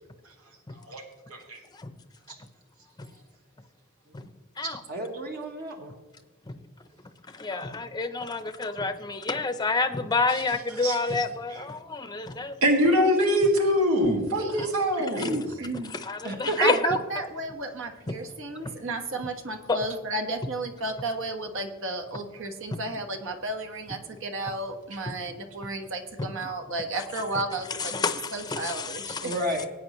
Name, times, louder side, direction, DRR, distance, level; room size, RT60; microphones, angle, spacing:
voice 1, 4.9-5.9 16.2-16.8 29.2-29.7, equal, 45° right, 1 dB, 1.2 m, -31 dB
voice 2, 7.3-12.5 14.6-14.7 15.1-15.3 15.8-17.0 18.1-18.2 18.6-18.7 19.7-19.8 25.1-25.2 26.2-26.3 27.0-27.1 27.3-27.4 27.7-29.4, left 3 dB, 20° left, 9 dB, 0.7 m, -29 dB
voice 3, 12.6-15.4, equal, 85° right, 1 dB, 2.1 m, -23 dB
voice 4, 15.0-15.9 16.6-28.0 28.3-29.3, right 2 dB, 65° right, 5 dB, 1.5 m, -33 dB
19.0 x 9.1 x 3.1 m, 1.2 s
head